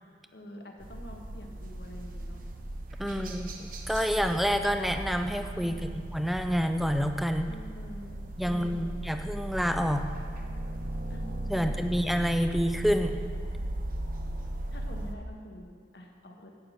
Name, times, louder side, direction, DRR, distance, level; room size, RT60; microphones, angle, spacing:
voice 1, 0.3-2.4 3.0-3.5 5.6-6.0 7.5-9.1 11.1-11.2 12.3-12.5 14.7-15.7 15.9-16.5, equal, 60° left, 2 dB, 1.4 m, -46 dB
sound 1, 0.8-15.1, right 1 dB, 50° right, 0.9 m, -37 dB
voice 2, 3.0-3.5 3.9-7.5 8.4-10.1 11.5-13.2, equal, ahead, 7 dB, 0.4 m, -28 dB
10.5 x 8.6 x 5.8 m, 2.1 s
head